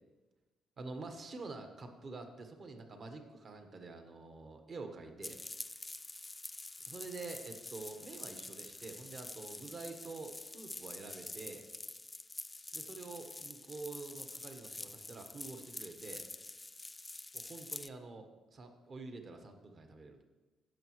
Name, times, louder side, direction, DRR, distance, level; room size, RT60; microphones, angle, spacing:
voice 1, 0.8-5.4 6.8-11.6 12.7-16.3 17.3-20.2, right 3 dB, 45° right, 5 dB, 1.1 m, -47 dB
sound 1, 5.2-17.9, left 2 dB, 15° left, 0.3 m, -47 dB
15.5 x 6.3 x 3.1 m, 1.2 s
cardioid pair, 90°, 0 cm